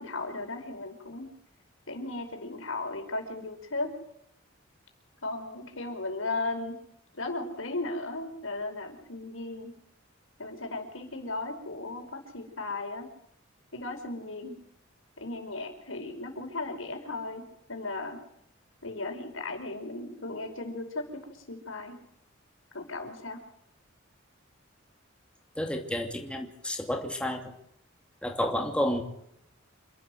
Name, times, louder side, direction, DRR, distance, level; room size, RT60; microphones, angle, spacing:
voice 1, 0.0-1.3 1.9-3.9 5.2-6.8 7.1-9.7 10.4-13.1 13.7-14.6 15.2-17.4 17.7-18.2 18.8-22.0 22.7-23.4, left 2 dB, 90° left, 4 dB, 5.5 m, -36 dB
voice 2, 25.6-27.5 28.2-29.0, left 1 dB, 5° left, 2 dB, 2.8 m, -30 dB
28.0 x 12.5 x 7.9 m, 0.75 s
head